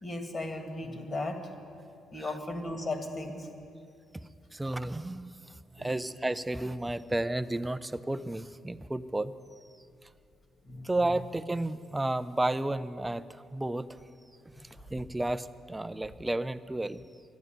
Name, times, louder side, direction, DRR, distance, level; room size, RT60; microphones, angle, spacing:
voice 1, 0.0-1.4 2.1-3.5 5.8-5.9 10.7-10.9, left 2 dB, 35° left, 4 dB, 2.1 m, -36 dB
voice 2, 4.5-9.3 10.8-13.9 14.9-17.0, right 2 dB, 10° right, 13 dB, 0.5 m, -32 dB
12.5 x 11.0 x 9.3 m, 2.4 s
cardioid pair, 90°, 0 cm